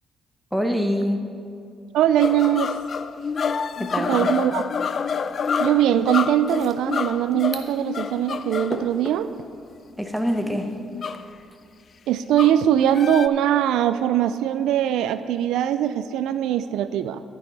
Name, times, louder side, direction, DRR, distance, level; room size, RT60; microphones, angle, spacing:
voice 1, 0.5-1.3 3.8-4.3 10.0-10.7, equal, 5° right, 4 dB, 1.0 m, -25 dB
voice 2, 1.9-2.7 4.0-4.6 5.6-9.3 12.1-17.2, right 11 dB, 85° right, 12 dB, 0.3 m, -21 dB
sound 1, 2.2-8.8 10.3-11.3 12.3-13.3, left 6 dB, 50° left, 0.3 m, -28 dB
sound 2, 5.1-11.2, left 2 dB, 30° left, 1.1 m, -42 dB
11.5 x 9.8 x 4.0 m, 2.5 s
cardioid pair, 90°, 0 cm